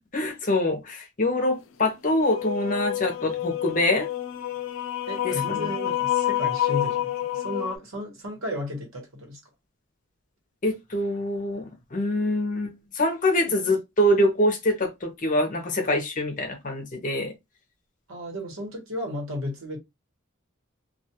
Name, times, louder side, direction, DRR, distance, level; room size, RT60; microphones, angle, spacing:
voice 1, 0.1-4.1 5.2-5.7 10.6-17.3, left 1 dB, 40° left, 0.7 m, -25 dB
sound 1, 2.1-7.8, left 13 dB, 70° left, 0.4 m, -28 dB
voice 2, 5.1-9.4 13.5-13.8 18.1-19.8, left 1 dB, 80° right, 1.1 m, -34 dB
2.3 x 2.3 x 2.8 m
head